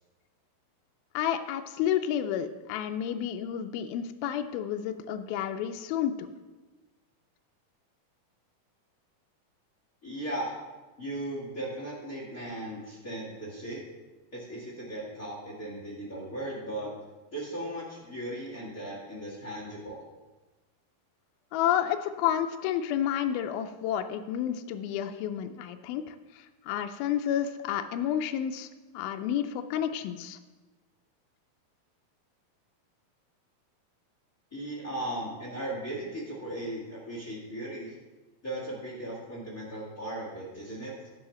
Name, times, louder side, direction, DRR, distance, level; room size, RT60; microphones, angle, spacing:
voice 1, 1.1-6.3 21.5-28.7 28.9-30.4, left 10 dB, 80° left, 7 dB, 2.3 m, -30 dB
voice 2, 10.0-10.5 11.0-13.9 14.3-16.9 17.3-20.0 34.5-37.9 38.4-40.9, right 1 dB, 35° left, -6 dB, 1.4 m, -37 dB
10.5 x 4.8 x 6.3 m, 1.2 s
omnidirectional pair, 4.4 m